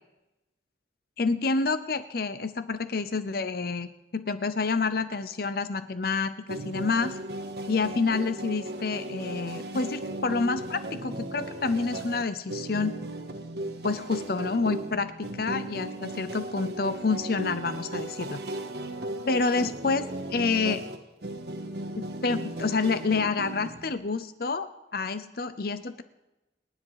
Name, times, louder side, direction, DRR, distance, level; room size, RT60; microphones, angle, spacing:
voice 1, 1.2-7.2 7.7-12.9 13.8-18.4 19.3-20.8 22.0-26.0, left 4 dB, 55° left, 12 dB, 0.7 m, -28 dB
sound 1, 6.5-23.9, right 1 dB, 60° right, 1.6 m, -36 dB
29.0 x 10.0 x 4.9 m, 1.0 s
head